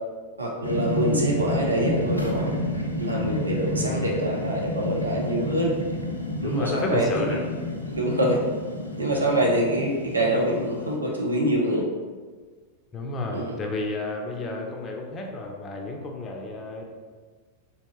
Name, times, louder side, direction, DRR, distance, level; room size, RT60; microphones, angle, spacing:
voice 1, 0.4-2.5 3.0-5.7 6.4-7.4 7.9-8.4 9.0-11.8 13.3-13.5, right 1 dB, 80° right, -1 dB, 0.5 m, -25 dB
sound 1, 0.6-11.0, left 2 dB, 85° left, 0.4 m, -30 dB
voice 2, 3.8-4.2 6.4-7.4 12.9-16.8, left 2 dB, 25° left, 1 dB, 0.5 m, -31 dB
3.4 x 2.8 x 3.0 m, 1.5 s
figure-of-eight pair, 90°, 0 cm